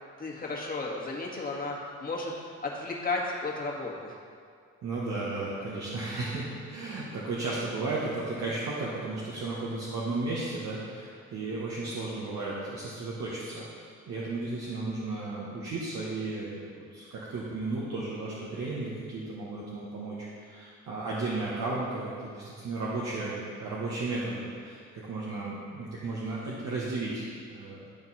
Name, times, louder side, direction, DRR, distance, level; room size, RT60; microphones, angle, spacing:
voice 1, 0.2-2.3 2.6-4.2, left 3 dB, 30° left, -2 dB, 1.7 m, -33 dB
voice 2, 4.8-13.7 14.1-27.9, right 2 dB, 65° right, -6 dB, 1.4 m, -34 dB
11.5 x 4.4 x 4.2 m, 2.2 s
cardioid pair, 90°, 30 cm